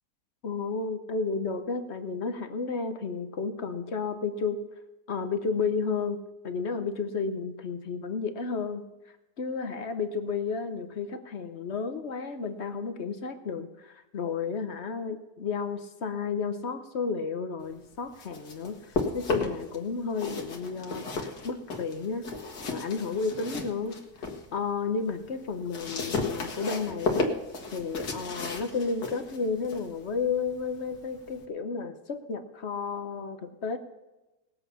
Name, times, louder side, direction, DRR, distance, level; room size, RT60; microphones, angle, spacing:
voice 1, 0.4-4.6 5.1-8.8 9.4-18.8 19.1-22.3 22.7-23.9 24.5-27.3 27.7-33.8, left 5 dB, 50° left, 9 dB, 1.0 m, -32 dB
sound 1, 17.9-19.8 20.1-24.4 24.9-31.4, left 3 dB, 80° left, 2.0 m, -34 dB
19.0 x 7.9 x 5.6 m, 1.0 s
omnidirectional pair, 1.7 m